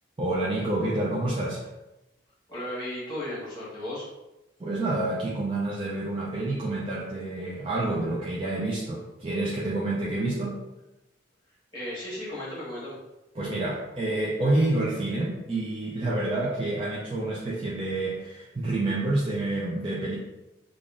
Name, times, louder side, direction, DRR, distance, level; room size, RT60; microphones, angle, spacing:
voice 1, 0.2-1.7 4.6-10.6 13.4-20.2, right 2 dB, 25° right, -6 dB, 0.4 m, -28 dB
voice 2, 2.5-4.1 11.7-13.0, left 1 dB, 20° left, -8 dB, 1.4 m, -35 dB
3.4 x 2.4 x 2.5 m, 0.99 s
head